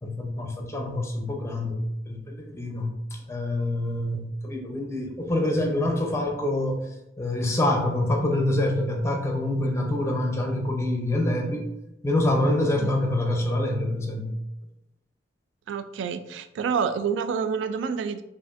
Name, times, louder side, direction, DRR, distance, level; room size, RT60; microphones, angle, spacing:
voice 1, 0.0-1.8 2.1-2.9 3.3-6.8 7.2-11.7 12.0-14.3, left 1 dB, 15° left, 2 dB, 0.6 m, -26 dB
voice 2, 15.7-18.2, right 6 dB, 85° right, 11 dB, 0.3 m, -28 dB
4.8 x 2.5 x 2.5 m, 0.88 s
head